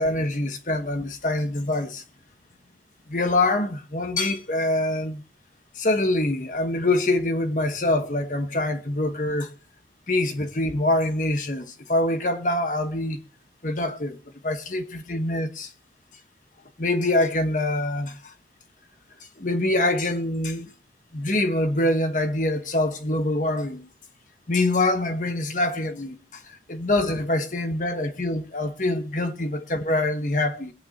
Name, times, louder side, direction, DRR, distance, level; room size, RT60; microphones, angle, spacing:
voice 1, 0.0-2.0 3.1-5.2 5.7-9.5 10.1-13.2 13.6-14.2 14.4-15.7 16.8-18.3 19.4-20.7 21.1-23.9 24.5-26.4 26.7-30.7, left 2 dB, 45° left, 1.2 m, -25 dB
22.0 x 8.9 x 2.8 m
head